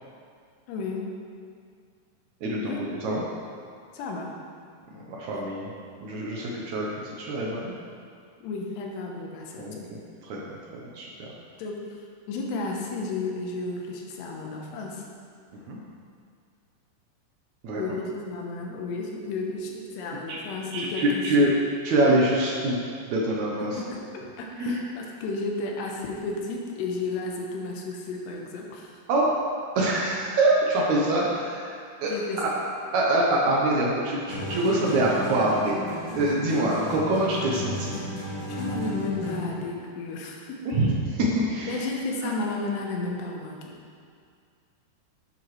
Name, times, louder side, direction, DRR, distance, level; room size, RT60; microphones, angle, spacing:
voice 1, 0.7-1.1 2.6-3.2 3.9-4.4 5.3-5.4 8.4-9.9 11.6-15.0 17.8-21.5 23.6-29.0 32.0-32.6 38.5-40.8 41.7-43.7, left 3 dB, 85° left, 0 dB, 3.2 m, -33 dB
voice 2, 2.4-3.2 4.9-5.7 6.0-7.7 9.6-11.3 15.5-15.8 17.6-18.0 20.3-20.4 20.7-21.5 21.8-22.8 23.0-23.8 24.6-24.9 29.1-29.3 29.7-31.7 32.0-32.5 32.9-38.0 40.6-41.8, right 1 dB, 75° right, -3 dB, 1.7 m, -25 dB
sound 1, 34.3-39.6, left 1 dB, 60° left, 4.3 m, -33 dB
10.5 x 9.0 x 3.2 m, 2.2 s
omnidirectional pair, 4.8 m